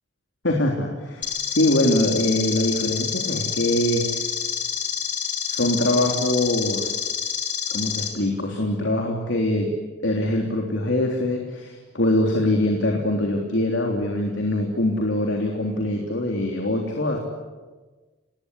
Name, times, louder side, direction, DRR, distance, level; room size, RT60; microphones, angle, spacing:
voice 1, 0.4-4.1 5.5-6.9 7.7-9.7 10.0-17.2, left 1 dB, 75° left, 1 dB, 3.5 m, -23 dB
sound 1, 1.2-8.1, left 8 dB, 40° left, 4.1 m, -28 dB
28.5 x 21.0 x 9.7 m, 1.3 s
head